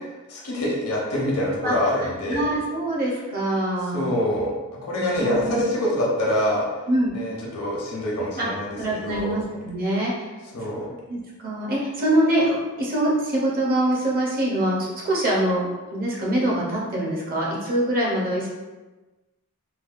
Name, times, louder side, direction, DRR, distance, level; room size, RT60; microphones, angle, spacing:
voice 1, 0.3-2.4 3.9-4.5 4.8-6.7 7.1-9.4 10.5-10.9, left 1 dB, 80° left, -4 dB, 0.9 m, -25 dB
voice 2, 2.3-4.1 4.9-5.6 6.9-7.1 8.4-8.5 8.8-10.1 11.1-18.5, right 1 dB, 40° right, -4 dB, 0.7 m, -24 dB
3.3 x 2.2 x 2.5 m, 1.2 s
head